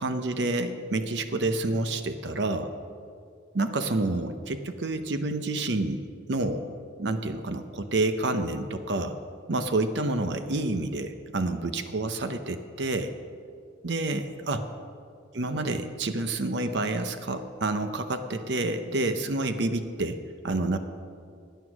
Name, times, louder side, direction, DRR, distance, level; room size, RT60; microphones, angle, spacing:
voice 1, 0.0-2.7 3.5-6.0 6.3-6.6 7.0-9.2 9.5-13.1 13.8-14.7 15.3-20.8, right 2 dB, 65° right, 8 dB, 0.7 m, -28 dB
15.5 x 9.5 x 6.1 m, 2.3 s
head